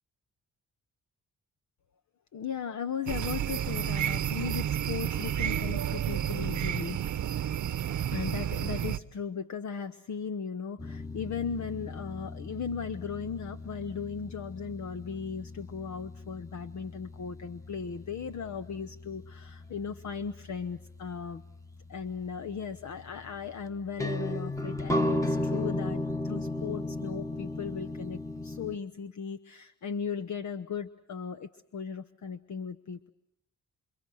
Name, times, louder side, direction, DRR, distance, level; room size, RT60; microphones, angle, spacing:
voice 1, 2.3-7.2 8.1-21.4 21.9-33.1, left 6 dB, 65° left, 10 dB, 1.0 m, -37 dB
sound 1, 3.1-9.0, right 10 dB, 65° right, 0.9 m, -31 dB
sound 2, 10.8-28.8, left 1 dB, 10° left, 1.3 m, -36 dB
29.0 x 27.0 x 6.3 m, 0.78 s
cardioid pair, 95°, 32 cm